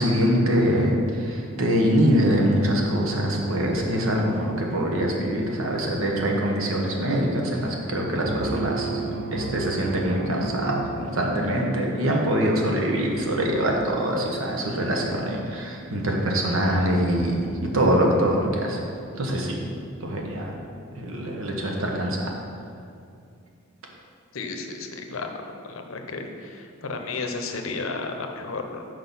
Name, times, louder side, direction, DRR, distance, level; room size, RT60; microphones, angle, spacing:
voice 1, 0.0-18.8 19.1-19.6 20.0-20.5 21.0-22.3, equal, 75° right, 0 dB, 1.1 m, -24 dB
sound 1, 8.3-11.8, right 5 dB, 45° right, 0.3 m, -33 dB
voice 2, 24.3-25.3 25.6-28.9, left 3 dB, 70° left, 4 dB, 0.7 m, -33 dB
6.1 x 5.0 x 5.5 m, 2.4 s
head